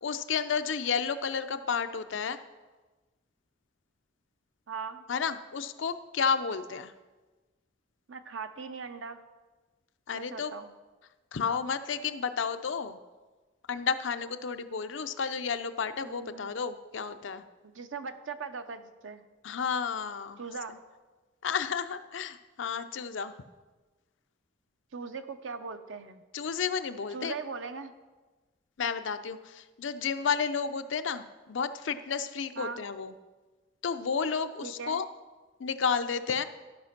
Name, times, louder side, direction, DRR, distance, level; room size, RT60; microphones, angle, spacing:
voice 1, 0.0-2.4 5.1-6.9 10.1-10.5 11.3-13.0 13.7-17.4 19.4-20.4 21.4-23.4 26.3-27.4 28.8-33.1 33.8-35.1 35.6-36.5, left 6 dB, 75° left, 10 dB, 0.5 m, -31 dB
voice 2, 4.7-5.0 8.1-9.2 10.1-10.7 16.0-16.5 17.6-19.2 20.4-20.7 24.9-26.2 27.1-27.9 32.6-32.8 34.6-35.0, right 5 dB, 85° right, 9 dB, 0.7 m, -40 dB
13.0 x 5.1 x 5.8 m, 1.3 s
head